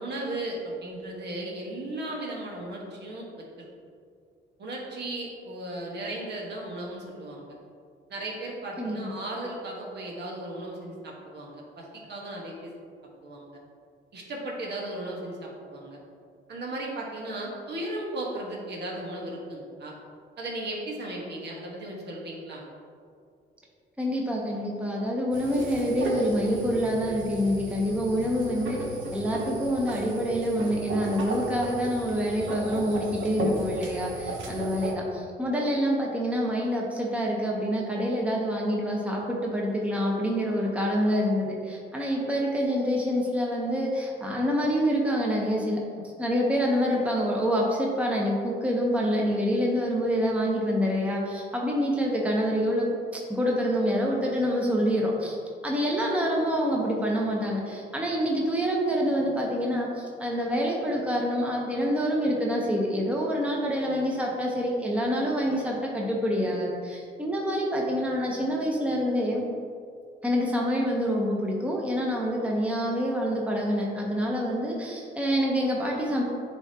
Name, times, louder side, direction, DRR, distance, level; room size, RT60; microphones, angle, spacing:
voice 1, 0.0-3.7 4.6-7.5 8.1-12.7 13.2-13.5 14.1-16.0 16.5-19.9 20.4-22.6, right 1 dB, 60° right, -3 dB, 1.4 m, -36 dB
voice 2, 8.8-9.1 24.0-28.8 29.1-45.8 46.2-52.9 53.1-55.4 55.6-69.4 70.2-76.2, equal, 5° right, -2 dB, 1.0 m, -26 dB
sound 1, 25.3-34.9, right 2 dB, 75° right, 1.0 m, -35 dB
9.5 x 3.6 x 2.9 m, 2.3 s
cardioid pair, 90°, 20 cm